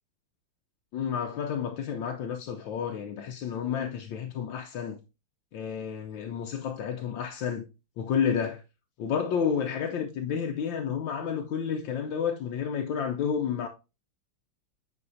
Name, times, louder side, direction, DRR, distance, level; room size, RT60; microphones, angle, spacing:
voice 1, 0.9-5.0 5.5-7.7 8.0-8.6 9.0-13.7, left 7 dB, 75° left, 1.4 m, -30 dB
8.4 x 5.2 x 2.6 m
omnidirectional pair, 2.2 m